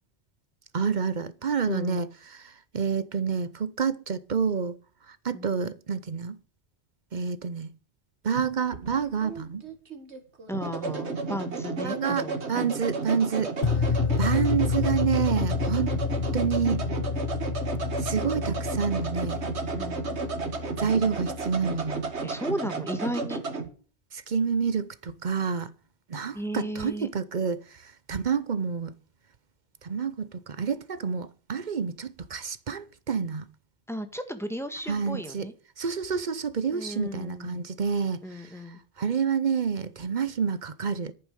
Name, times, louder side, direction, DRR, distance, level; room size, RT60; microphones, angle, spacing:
voice 1, 0.7-2.1 2.3-4.7 5.1-6.4 7.1-7.7 8.2-9.6 11.3-11.4 11.8-13.5 14.2-16.0 16.3-16.9 18.0-19.5 20.8-22.0 24.1-25.7 26.1-28.9 29.8-33.5 34.9-35.5 35.8-38.5 39.0-41.1, right 6 dB, 45° right, 0.9 m, -28 dB
voice 2, 1.7-2.1 5.3-5.5 10.5-12.8 19.7-20.0 22.2-23.4 26.3-27.1 33.9-35.5 36.7-37.6 38.2-38.8, equal, ahead, 1.5 m, -35 dB
sound 1, 8.3-23.7, right 4 dB, 85° right, 1.9 m, -33 dB
sound 2, 13.6-21.8, left 6 dB, 35° left, 0.7 m, -29 dB
11.0 x 8.9 x 6.4 m
omnidirectional pair, 1.1 m